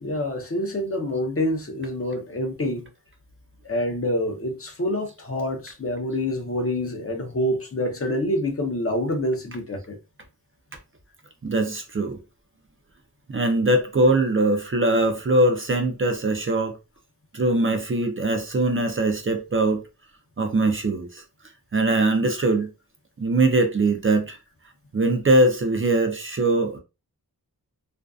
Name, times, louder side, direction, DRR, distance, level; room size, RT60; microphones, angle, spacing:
voice 1, 0.0-2.8 3.6-10.0, left 1 dB, 40° left, 0.6 m, -27 dB
voice 2, 11.4-12.2 13.3-16.8 17.3-19.8 20.4-21.2 21.7-22.7 23.2-24.4 24.9-26.8, right 2 dB, 35° right, 0.5 m, -21 dB
2.5 x 2.2 x 2.3 m
wide cardioid pair, 65°, 36 cm